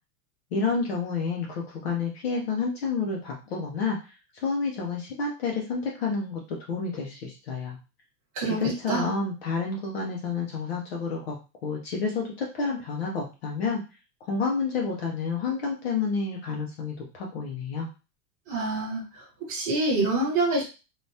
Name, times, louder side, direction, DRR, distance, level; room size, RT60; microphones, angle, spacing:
voice 1, 0.5-4.2 4.4-7.8 8.4-11.4 11.6-13.8 14.3-17.9, left 4 dB, 40° left, -1 dB, 0.5 m, -29 dB
voice 2, 18.5-19.2 19.5-20.6, right 2 dB, 15° right, -6 dB, 1.2 m, -26 dB
3.3 x 2.2 x 2.6 m, 0.31 s
supercardioid pair, 180°, 49 cm